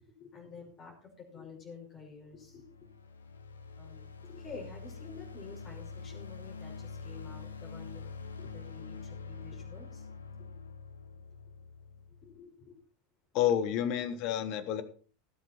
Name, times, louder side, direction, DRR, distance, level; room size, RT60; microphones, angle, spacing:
voice 1, 0.1-2.6 3.8-8.0 8.4-10.1 12.2-12.8 13.4-13.5, left 5 dB, 30° left, -1 dB, 5.3 m, -49 dB
sound 1, 2.2-12.4, left 5 dB, 75° left, 1.2 m, -46 dB
voice 2, 13.3-14.8, left 10 dB, 45° left, 13 dB, 1.4 m, -29 dB
18.0 x 8.0 x 4.5 m, 0.41 s
figure-of-eight pair, 80°, 0 cm